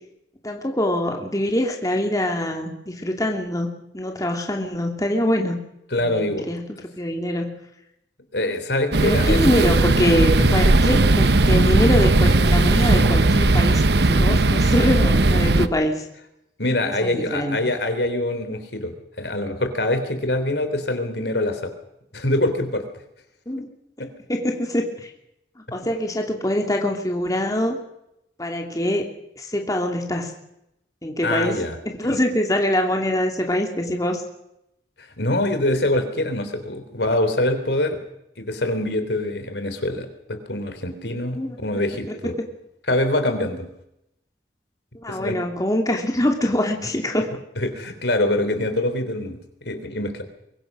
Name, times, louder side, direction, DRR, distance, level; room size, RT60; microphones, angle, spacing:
voice 1, 0.4-5.6 6.0-6.7 7.0-7.6 9.0-16.0 16.8-17.6 23.5-23.7 24.3-25.1 25.7-27.8 28.4-29.1 29.4-30.3 31.0-31.6 31.9-34.2 41.3-41.6 45.0-47.3, left 1 dB, 20° left, 2 dB, 2.7 m, -24 dB
voice 2, 5.9-6.4 8.3-9.4 10.4-10.5 16.6-21.7 22.1-22.8 24.0-24.1 31.2-31.8 32.0-32.2 35.0-38.0 38.4-42.3 42.9-43.7 45.1-45.4 47.6-50.2, left 1 dB, 70° left, 8 dB, 3.6 m, -24 dB
sound 1, 8.9-15.7, right 2 dB, 65° right, 1.0 m, -17 dB
24.0 x 22.5 x 6.2 m, 0.81 s
head